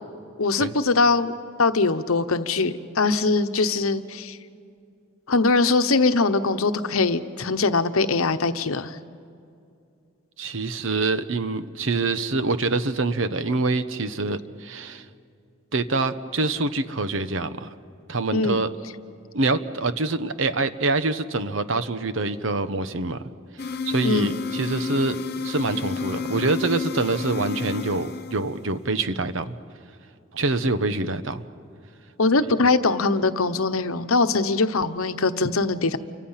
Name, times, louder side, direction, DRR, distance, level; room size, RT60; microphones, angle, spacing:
voice 1, 0.4-1.3 1.6-4.4 5.3-9.0 18.3-18.6 24.0-24.4 32.2-36.0, left 3 dB, 85° left, 10 dB, 1.0 m, -22 dB
voice 2, 10.4-15.0 15.7-17.7 18.1-18.7 19.3-23.2 23.8-25.2 25.4-29.6 30.3-31.4, right 3 dB, 65° right, 11 dB, 1.0 m, -25 dB
sound 1, 23.6-28.9, left 5 dB, 50° left, 0.8 m, -31 dB
29.0 x 25.0 x 5.8 m, 2.5 s
head